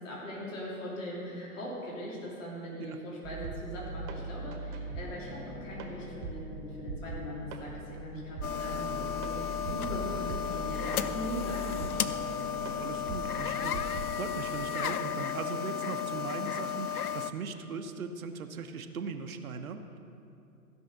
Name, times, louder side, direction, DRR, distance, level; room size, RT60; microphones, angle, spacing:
voice 1, 0.0-12.0, equal, 55° left, -5 dB, 3.2 m, -40 dB
sound 1, 3.2-14.1, right 1 dB, 35° right, 1.2 m, -40 dB
sound 2, 8.4-17.3, left 8 dB, 75° left, 0.6 m, -34 dB
voice 2, 8.7-9.2 10.3-10.4 12.6-20.0, right 5 dB, 65° right, 6 dB, 0.9 m, -39 dB
15.5 x 5.5 x 6.6 m, 2.7 s
figure-of-eight pair, 120°, 45 cm